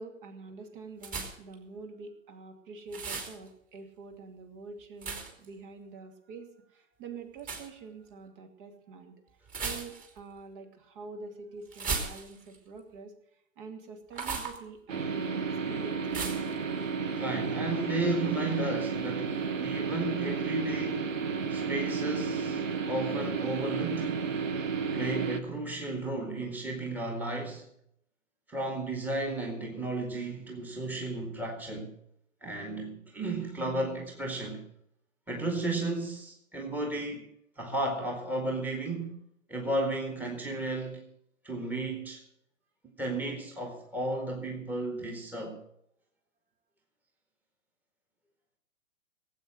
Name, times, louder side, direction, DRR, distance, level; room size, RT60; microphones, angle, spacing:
voice 1, 0.0-16.2, right 4 dB, 40° right, 2.6 m, -46 dB
sound 1, 1.0-1.5 2.9-3.4 5.0-5.5 7.4-7.7 9.5-10.2 11.7-12.6 14.1-14.6 16.1-16.5, right 4 dB, 20° right, 2.8 m, -35 dB
sound 2, 14.9-25.4, right 5 dB, 75° right, 1.3 m, -32 dB
voice 2, 17.2-21.2 21.5-24.2 24.9-27.7 28.5-31.9 32.4-34.6 35.3-37.3 37.6-39.2 39.5-41.1 41.4-42.2 43.0-45.6, right 2 dB, 5° right, 1.8 m, -33 dB
18.0 x 8.2 x 6.2 m
figure-of-eight pair, 120°, 39 cm